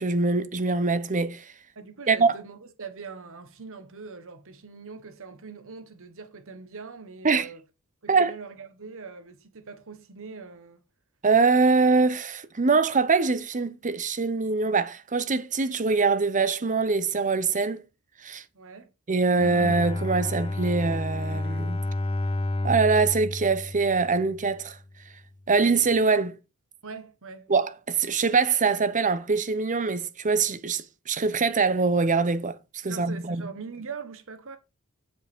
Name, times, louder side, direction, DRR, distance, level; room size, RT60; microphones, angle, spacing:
voice 1, 0.0-1.4 2.1-2.3 7.2-7.5 8.1-8.3 11.2-17.8 18.2-18.4 19.1-21.8 22.6-24.8 25.5-26.4 27.5-32.6 32.8-33.4, right 4 dB, 35° right, 0.8 m, -23 dB
voice 2, 1.7-7.6 8.0-10.8 18.5-18.9 26.8-27.5 32.9-34.6, right 5 dB, 65° right, 1.4 m, -42 dB
Bowed string instrument, 19.3-24.6, left 2 dB, 25° left, 0.6 m, -30 dB
7.9 x 6.9 x 3.6 m
head